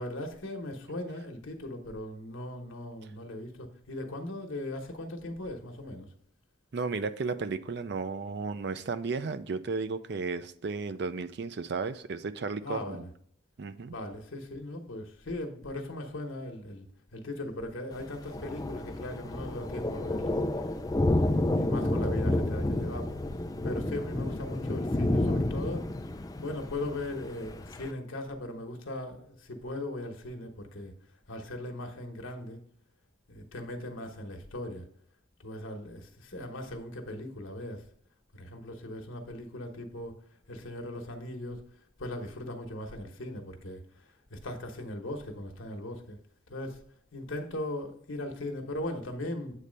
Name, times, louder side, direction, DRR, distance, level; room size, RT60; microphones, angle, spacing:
voice 1, 0.0-6.1 12.6-13.1 13.9-16.9 17.1-20.4 21.1-23.1 23.6-25.9 26.4-30.9 31.3-32.6 33.3-34.9 35.4-37.8 38.3-40.2 40.5-41.6 42.0-43.8 44.3-46.2 46.5-46.8 47.1-49.5, left 1 dB, 80° left, 1.1 m, -38 dB
voice 2, 6.7-13.0 13.6-13.9, right 4 dB, 55° right, 0.4 m, -34 dB
Thunder, 17.9-27.9, left 1 dB, 20° left, 0.4 m, -30 dB
8.2 x 3.2 x 5.1 m
head